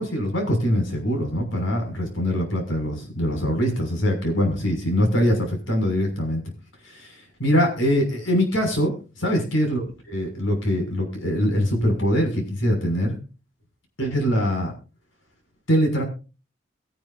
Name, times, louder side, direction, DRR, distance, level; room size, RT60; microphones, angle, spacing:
voice 1, 0.0-6.4 6.8-8.9 9.2-13.2 14.0-14.7 15.7-16.0, equal, 80° left, 3 dB, 6.2 m, -23 dB
22.5 x 10.5 x 2.6 m, 0.33 s
head